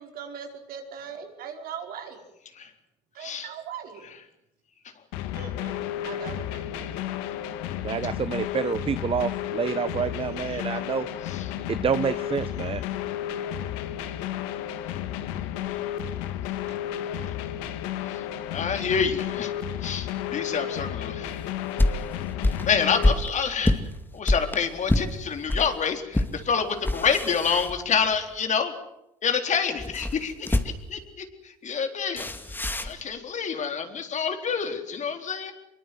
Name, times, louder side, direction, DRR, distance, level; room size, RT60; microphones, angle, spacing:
voice 1, 0.0-2.2 3.1-4.1 5.3-7.0 16.7-16.8, right 7 dB, 65° right, 4 dB, 5.1 m, -40 dB
voice 2, 3.2-3.5 10.5-10.7 11.2-11.5 17.3-17.4 18.0-18.2 18.5-19.5 19.8-21.4 21.9-22.1 22.6-23.8 24.1-28.7 29.2-32.3 32.8-35.5, left 6 dB, 50° left, 6 dB, 4.0 m, -28 dB
sound 1, 5.1-23.1, left 11 dB, 80° left, 1.8 m, -32 dB
voice 3, 7.8-11.1 11.7-12.8, right 6 dB, 35° right, 14 dB, 1.0 m, -28 dB
sound 2, 21.3-25.7 26.1-26.4 26.7-28.2 29.8-31.0 32.2-33.0, left 1 dB, 10° left, 2.5 m, -26 dB
25.0 x 23.0 x 7.9 m, 0.83 s
hypercardioid pair, 65°, 16 cm